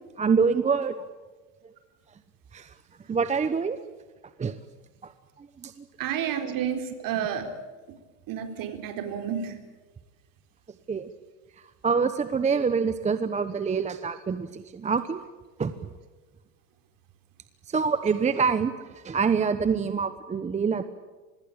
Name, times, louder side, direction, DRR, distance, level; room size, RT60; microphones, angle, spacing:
voice 1, 0.2-1.0 2.5-2.7 3.1-3.8 4.4-4.6 5.6-5.7 10.9-11.1 11.8-15.2 15.6-15.7 17.7-18.7 19.0-20.8, right 5 dB, 15° right, 11 dB, 0.9 m, -25 dB
voice 2, 6.0-7.5 8.3-9.5, right 9 dB, 45° right, 7 dB, 4.1 m, -30 dB
25.5 x 20.5 x 8.7 m, 1.3 s
supercardioid pair, 125°, 46 cm